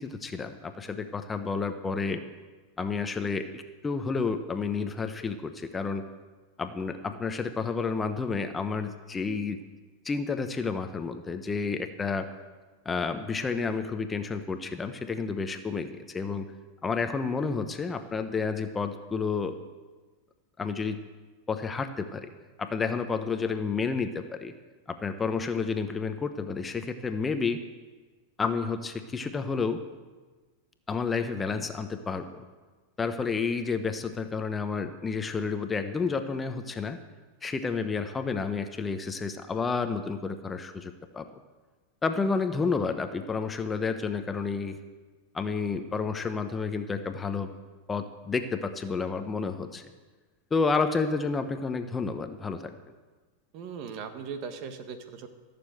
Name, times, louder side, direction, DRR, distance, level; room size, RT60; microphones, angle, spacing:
voice 1, 0.0-2.2 2.8-6.1 6.6-9.6 10.0-12.3 12.8-16.5 16.8-19.5 20.6-21.0 21.5-22.3 22.6-24.5 24.9-27.6 28.4-29.8 30.9-32.4 33.0-37.0 37.4-41.3 42.0-44.8 45.3-47.5 47.9-49.8 50.5-52.7, left 4 dB, 20° left, 8 dB, 0.9 m, -30 dB
voice 2, 53.5-55.3, right 6 dB, 50° right, 8 dB, 1.5 m, -38 dB
15.0 x 7.0 x 7.8 m, 1.3 s
hypercardioid pair, 110°, 0 cm